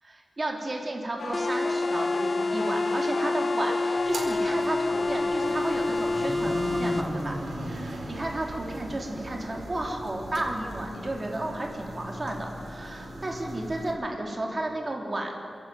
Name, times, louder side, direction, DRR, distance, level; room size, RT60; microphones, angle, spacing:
voice 1, 0.0-7.4 8.1-15.3, right 1 dB, 30° right, 1 dB, 3.2 m, -32 dB
sound 1, 1.2-6.3, left 5 dB, 75° left, 0.7 m, -34 dB
sound 2, 1.3-7.1, left 2 dB, 25° left, 0.4 m, -28 dB
sound 3, 4.0-13.9, right 1 dB, 60° right, 4.3 m, -37 dB
28.5 x 10.5 x 9.3 m, 2.9 s
wide cardioid pair, 125°, 0 cm